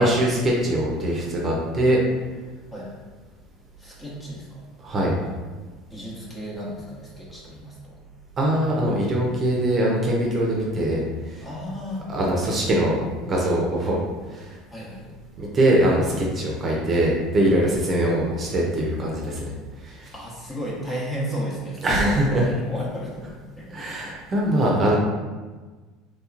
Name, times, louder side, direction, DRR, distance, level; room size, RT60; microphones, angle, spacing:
voice 1, 0.0-2.0 4.8-5.2 8.4-11.5 12.1-14.0 14.3-14.6 15.4-19.5 19.8-20.1 21.8-22.5 23.7-25.0, right 1 dB, 35° right, -2 dB, 0.7 m, -22 dB
voice 2, 3.8-4.6 5.9-8.0 11.4-12.1 14.7-15.1 20.1-24.2, equal, 20° left, -5 dB, 1.1 m, -34 dB
3.3 x 2.8 x 2.5 m, 1.3 s
supercardioid pair, 95°, 0 cm